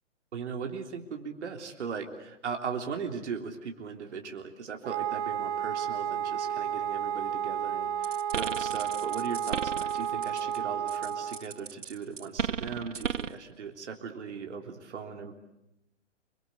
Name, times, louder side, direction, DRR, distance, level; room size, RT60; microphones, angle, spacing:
voice 1, 0.3-15.4, right 6 dB, 65° right, 3 dB, 3.5 m, -38 dB
Wind instrument woodwind instrument, 4.8-11.5, right 9 dB, 25° right, 2.0 m, -32 dB
sound 1, 8.0-10.6 10.9-13.4, right 7 dB, 80° right, 1.1 m, -35 dB
27.5 x 23.5 x 8.3 m, 0.85 s
hypercardioid pair, 135°, 37 cm